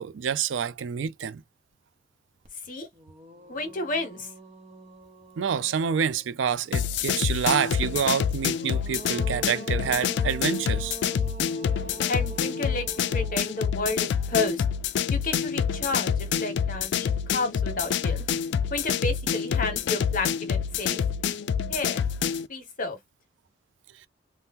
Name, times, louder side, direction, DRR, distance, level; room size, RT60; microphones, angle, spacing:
voice 1, 0.0-1.4 5.4-11.0, right 7 dB, 80° right, 0.4 m, -27 dB
sound 1, 2.4-2.5 2.9-6.6 8.3-15.5, right 2 dB, 35° right, 0.8 m, -44 dB
voice 2, 3.5-4.3 12.1-14.6 15.1-18.2 18.7-21.0 21.7-22.1 22.5-23.0, left 3 dB, 45° left, 1.0 m, -31 dB
sound 2, 6.7-22.5, left 7 dB, 65° left, 0.3 m, -27 dB
2.8 x 2.1 x 3.5 m
head